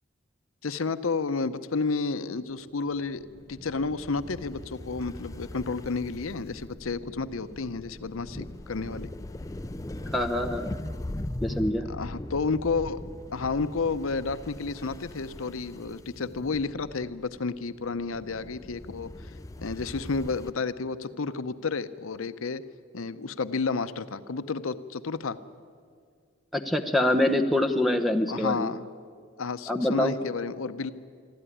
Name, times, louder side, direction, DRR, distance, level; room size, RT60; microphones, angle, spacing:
voice 1, 0.6-9.1 11.9-13.0 13.3-22.6 22.9-25.4 28.3-28.8 29.4-30.9, left 4 dB, 75° left, 13 dB, 0.7 m, -31 dB
sound 1, 2.9-20.5, left 1 dB, 15° left, 0.5 m, -40 dB
voice 2, 10.1-10.7 11.4-11.9 26.5-28.7 29.7-30.1, left 1 dB, ahead, 7 dB, 0.9 m, -25 dB
23.5 x 13.5 x 10.0 m, 2.1 s
head